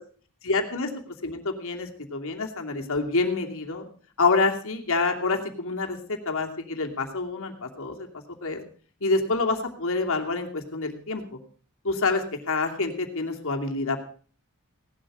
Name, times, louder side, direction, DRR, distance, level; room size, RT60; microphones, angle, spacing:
voice 1, 0.4-3.9 4.2-8.1 8.4-8.6 9.0-11.4 11.8-14.0, left 3 dB, 65° left, 3 dB, 2.7 m, -27 dB
18.0 x 12.0 x 4.9 m, 0.43 s
head